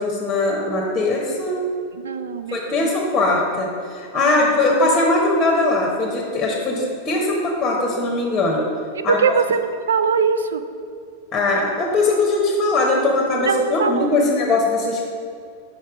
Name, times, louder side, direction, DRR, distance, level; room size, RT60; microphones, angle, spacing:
voice 1, 0.0-1.6 2.5-8.6 9.0-9.2 11.3-15.0, left 2 dB, 20° left, -1 dB, 1.0 m, -20 dB
voice 2, 1.9-2.9 4.1-4.6 9.0-10.6 13.4-14.2, right 5 dB, 65° right, 11 dB, 0.3 m, -22 dB
5.8 x 5.4 x 4.8 m, 2.3 s
figure-of-eight pair, 90°, 0 cm